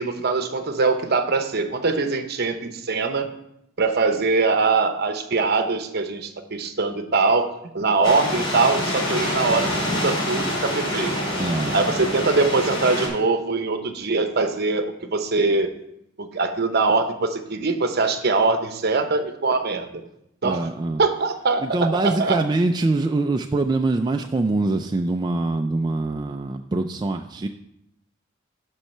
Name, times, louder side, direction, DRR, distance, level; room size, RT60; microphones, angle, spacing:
voice 1, 0.0-3.3 3.8-7.5 7.7-11.1 11.7-15.7 16.2-19.9 20.4-20.7 21.0-22.4, right 3 dB, 55° right, 7 dB, 0.9 m, -22 dB
sound 1, 8.0-13.1, left 1 dB, 80° left, 3.6 m, -26 dB
voice 2, 11.4-11.8 20.4-21.0 21.6-27.5, right 2 dB, 20° right, 5 dB, 0.3 m, -24 dB
7.4 x 5.4 x 6.6 m, 0.80 s
head